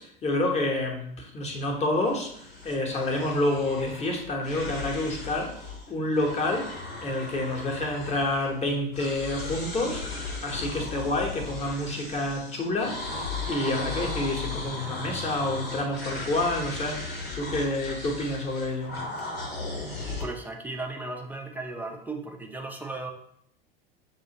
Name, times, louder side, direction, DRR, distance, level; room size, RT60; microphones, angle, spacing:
voice 1, 0.0-19.0, left 2 dB, 20° left, 0.9 m, -29 dB
sound 1, 2.1-5.9 6.1-8.7 8.9-20.3, left 3 dB, 80° left, 0.9 m, -36 dB
voice 2, 20.2-23.1, right 2 dB, 5° right, 0.5 m, -36 dB
6.9 x 2.4 x 2.8 m
figure-of-eight pair, 80°, 30 cm